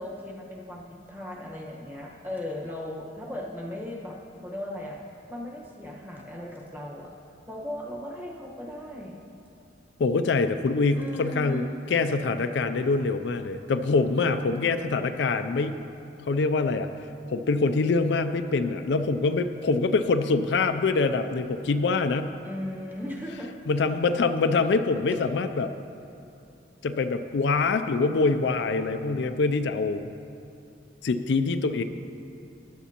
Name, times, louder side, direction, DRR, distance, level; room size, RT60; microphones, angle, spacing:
voice 1, 0.0-5.0 5.3-7.1 7.5-9.2 11.0-11.7 22.4-23.5, left 1 dB, 10° right, -2 dB, 1.2 m, -37 dB
voice 2, 10.0-15.8 16.2-22.3 23.7-25.7 26.8-30.0 31.0-31.8, left 3 dB, 65° left, 9 dB, 0.4 m, -25 dB
15.0 x 11.0 x 2.9 m, 2.7 s
head